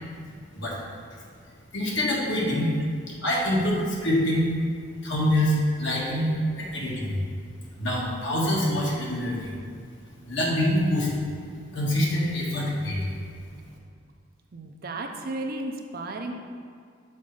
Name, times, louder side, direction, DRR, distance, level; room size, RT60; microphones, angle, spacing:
voice 1, 1.7-2.7 3.2-4.5 5.0-6.3 6.6-7.2 7.8-9.5 10.3-11.2 11.7-13.1, left 1 dB, 65° left, -4 dB, 1.6 m, -25 dB
voice 2, 14.5-16.3, right 2 dB, 50° right, 3 dB, 0.6 m, -33 dB
6.5 x 4.4 x 5.4 m, 2.1 s
head